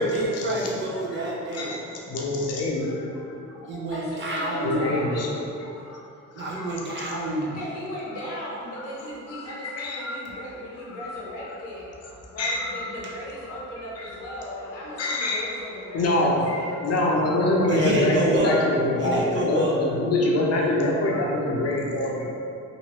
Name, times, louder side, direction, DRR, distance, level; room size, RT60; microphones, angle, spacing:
voice 1, 0.0-1.7 3.7-4.9 6.3-7.5 13.0-13.1 17.7-18.6 19.0-19.8, right 1 dB, 40° right, -3 dB, 0.7 m, -27 dB
voice 2, 2.1-3.1 3.5-3.7 4.6-5.3 5.6-6.0 6.4-6.7 8.8-8.9 9.3-10.2 11.0-11.2 12.4-12.8 13.5-13.6 14.0-14.1 15.0-15.5 15.9-22.3, left 1 dB, 55° left, -2 dB, 0.6 m, -25 dB
voice 3, 3.9-5.4 7.5-11.9 12.3-16.7 17.7-18.0, left 1 dB, 85° left, -5 dB, 0.8 m, -37 dB
2.9 x 2.6 x 2.9 m, 2.5 s
cardioid pair, 90°, 30 cm